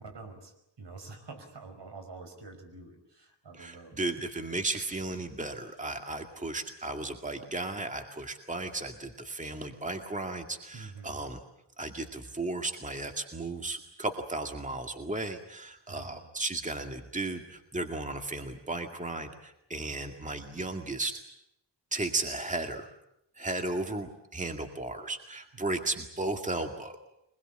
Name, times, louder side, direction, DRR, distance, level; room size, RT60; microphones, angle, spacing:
voice 1, 0.0-4.3 10.7-11.3 15.9-16.3 25.6-25.9, right 3 dB, 65° right, 7 dB, 5.3 m, -47 dB
voice 2, 3.5-11.4 11.8-21.1 21.9-22.9 23.4-27.0, right 2 dB, 15° right, 5 dB, 2.1 m, -35 dB
24.5 x 21.0 x 8.9 m, 0.80 s
wide cardioid pair, 85°, 45 cm